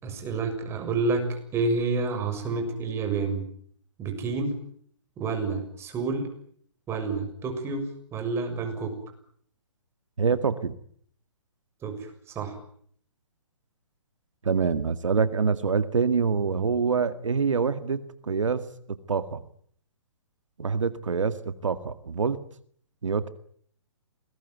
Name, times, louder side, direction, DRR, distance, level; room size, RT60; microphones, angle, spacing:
voice 1, 0.0-3.4 4.0-4.5 5.2-6.3 6.9-8.9 11.8-12.6, right 3 dB, 15° right, 6 dB, 6.8 m, -29 dB
voice 2, 10.2-10.7 14.4-18.7 19.1-19.4 20.6-22.4 23.0-23.3, right 5 dB, 85° right, 11 dB, 2.0 m, -25 dB
28.5 x 20.5 x 9.5 m, 0.63 s
hypercardioid pair, 145°, 16 cm